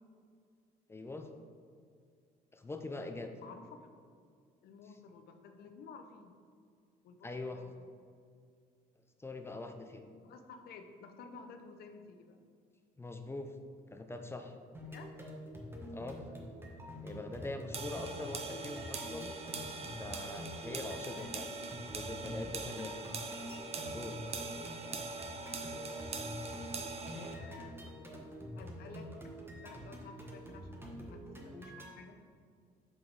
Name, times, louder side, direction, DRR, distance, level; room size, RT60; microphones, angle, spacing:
voice 1, 0.9-1.3 2.5-3.3 7.2-7.6 9.2-10.0 13.0-13.5 13.9-14.6 15.9-16.2 17.0-19.3 19.9-21.5 21.9-22.9 23.9-24.2, left 2 dB, 15° left, 6 dB, 0.5 m, -43 dB
voice 2, 3.4-3.9 4.6-6.4 7.0-7.9 10.2-12.4 14.8-15.2 17.4-17.8 27.1-27.8 28.5-32.2, left 5 dB, 70° left, 6 dB, 0.7 m, -53 dB
sound 1, 14.7-31.9, equal, 15° right, 1.0 m, -46 dB
sound 2, 17.7-27.3, right 4 dB, 35° right, 0.7 m, -42 dB
5.6 x 5.0 x 4.7 m, 2.1 s
cardioid pair, 110°, 17 cm